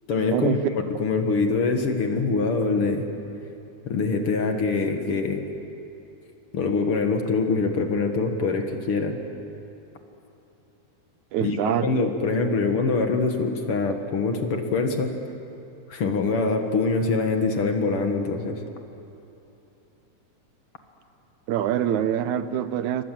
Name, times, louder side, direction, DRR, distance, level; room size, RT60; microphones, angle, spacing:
voice 1, 0.1-0.6 0.9-3.0 3.9-5.4 6.5-9.2 11.4-15.1 15.9-18.6, left 4 dB, 50° left, 5 dB, 2.3 m, -24 dB
voice 2, 11.3-12.1 21.5-23.0, right 10 dB, 80° right, 12 dB, 2.2 m, -25 dB
28.0 x 24.0 x 7.6 m, 2.9 s
omnidirectional pair, 3.5 m